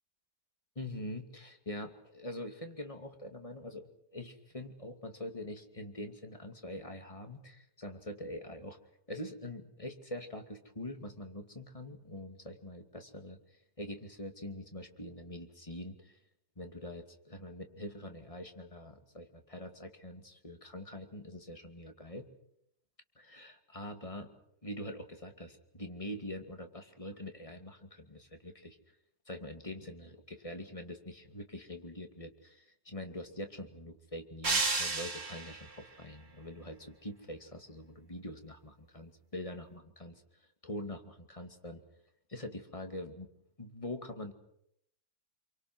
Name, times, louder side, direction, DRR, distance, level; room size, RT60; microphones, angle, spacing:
voice 1, 0.8-8.8 9.1-13.4 13.8-16.2 16.6-22.3 23.2-24.3 24.6-28.8 29.3-40.2 40.6-41.8 42.3-43.3 43.6-44.3, left 1 dB, 20° left, 5 dB, 2.5 m, -44 dB
sound 1, 34.4-35.7, right 3 dB, 45° right, 3.0 m, -31 dB
28.0 x 24.5 x 6.2 m, 0.74 s
omnidirectional pair, 1.8 m